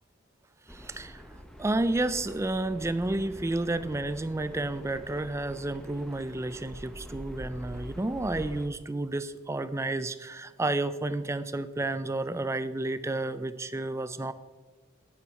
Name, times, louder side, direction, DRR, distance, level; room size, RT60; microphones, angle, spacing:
sound 1, 0.7-8.7, equal, 5° left, 0.8 m, -45 dB
voice 1, 0.7-1.2 1.6-14.3, right 2 dB, 15° right, 13 dB, 0.4 m, -31 dB
9.5 x 9.4 x 4.2 m, 1.3 s
head